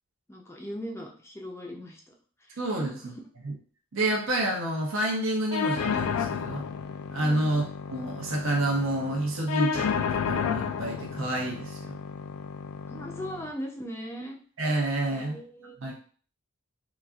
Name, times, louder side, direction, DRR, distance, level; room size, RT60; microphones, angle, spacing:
voice 1, 0.3-2.1 2.5-3.1 7.2-7.5 12.9-14.4 15.1-15.9, equal, 10° left, 1 dB, 0.5 m, -39 dB
voice 2, 2.6-3.1 3.4-3.5 3.9-6.7 7.1-7.6 7.9-12.0 14.6-15.4 15.8-15.9, right 1 dB, 60° right, -1 dB, 0.7 m, -28 dB
sound 1, 5.5-13.5, left 6 dB, 85° left, 0.3 m, -32 dB
4.1 x 2.4 x 2.3 m, 0.43 s
head